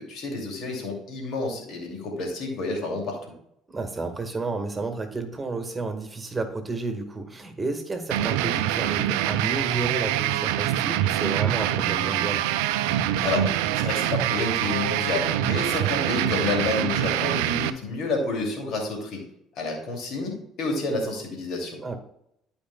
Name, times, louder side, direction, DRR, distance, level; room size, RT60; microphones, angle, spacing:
voice 1, 0.0-3.2 13.2-13.5 13.7-19.2 19.6-22.0, left 3 dB, 60° left, 1 dB, 2.5 m, -29 dB
voice 2, 3.7-12.4 21.8-22.0, right 3 dB, 25° right, 6 dB, 1.6 m, -31 dB
sound 1, 8.1-17.7, right 12 dB, 75° right, 0.4 m, -25 dB
12.5 x 5.2 x 2.3 m, 0.76 s
hypercardioid pair, 55°, 0 cm